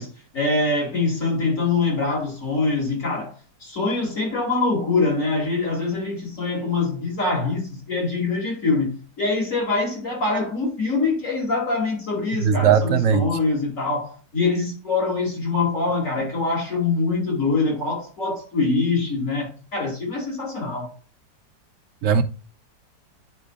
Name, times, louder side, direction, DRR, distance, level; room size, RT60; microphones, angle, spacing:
voice 1, 0.0-3.3 3.6-20.9, left 3 dB, 45° left, 3.2 m, -24 dB
voice 2, 12.4-13.3 22.0-22.2, right 7 dB, 65° right, 0.8 m, -18 dB
10.0 x 5.2 x 2.3 m
omnidirectional pair, 1.9 m